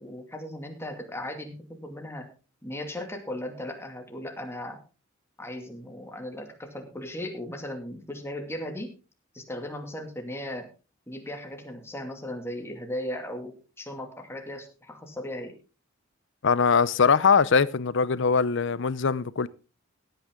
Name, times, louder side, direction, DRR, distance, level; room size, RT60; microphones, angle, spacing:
voice 1, 0.0-2.3 2.6-4.8 5.4-8.9 9.3-10.7 11.1-15.5, left 1 dB, 15° left, 2.4 m, -37 dB
voice 2, 16.4-19.5, left 5 dB, 65° left, 0.7 m, -22 dB
16.5 x 9.2 x 3.8 m
head